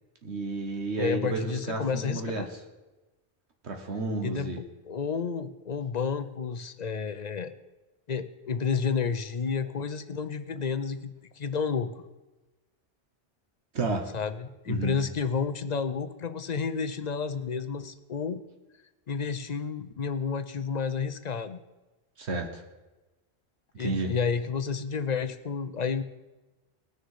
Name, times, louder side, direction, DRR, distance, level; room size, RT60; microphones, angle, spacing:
voice 1, 0.2-2.5 3.6-4.6 13.7-14.1 14.7-15.0 22.2-22.6 23.8-24.1, right 3 dB, 70° right, 4 dB, 1.4 m, -31 dB
voice 2, 1.0-2.5 4.2-4.5 4.8-7.5 8.1-12.0 14.1-18.4 19.1-21.6 23.8-26.0, left 5 dB, 45° left, 11 dB, 0.6 m, -31 dB
19.5 x 6.6 x 4.7 m, 1.1 s
omnidirectional pair, 1.2 m